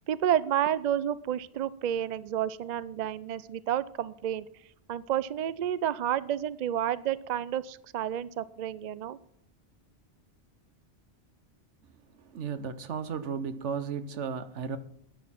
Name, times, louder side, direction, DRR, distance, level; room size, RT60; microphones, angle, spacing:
voice 1, 0.1-4.5 4.9-9.2, right 10 dB, 55° right, 0.5 m, -30 dB
voice 2, 12.1-14.8, right 6 dB, 80° right, 1.2 m, -34 dB
10.5 x 9.4 x 5.8 m
omnidirectional pair, 1.2 m